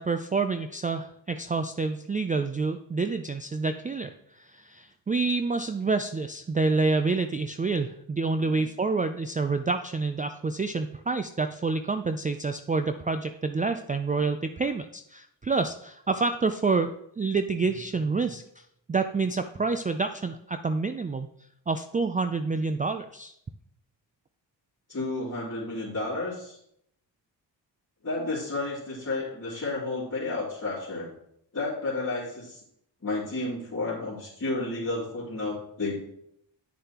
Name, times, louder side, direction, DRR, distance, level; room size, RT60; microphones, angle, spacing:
voice 1, 0.0-21.3 21.7-23.3, right 4 dB, 20° right, 8 dB, 0.4 m, -28 dB
voice 2, 24.9-26.6 28.0-31.1 31.5-32.6 33.0-36.0, left 2 dB, 35° left, -10 dB, 2.8 m, -31 dB
9.7 x 6.5 x 3.0 m, 0.73 s
cardioid pair, 70°, 44 cm